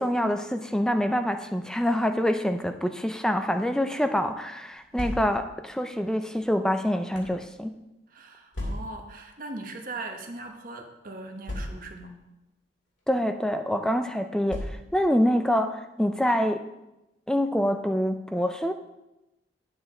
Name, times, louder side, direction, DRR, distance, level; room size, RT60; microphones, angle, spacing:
voice 1, 0.0-7.7 13.1-16.6 17.3-18.7, equal, 5° left, 7 dB, 0.4 m, -26 dB
sound 1, 4.7-5.6 6.4-7.4 8.5-9.1 10.0-10.2 10.4-10.5 11.4-12.1 13.0-13.2 14.5-15.1, left 1 dB, 70° left, 2.6 m, -36 dB
voice 2, 8.1-12.1, right 2 dB, 45° right, 4 dB, 1.2 m, -40 dB
11.0 x 8.0 x 3.8 m, 0.97 s
head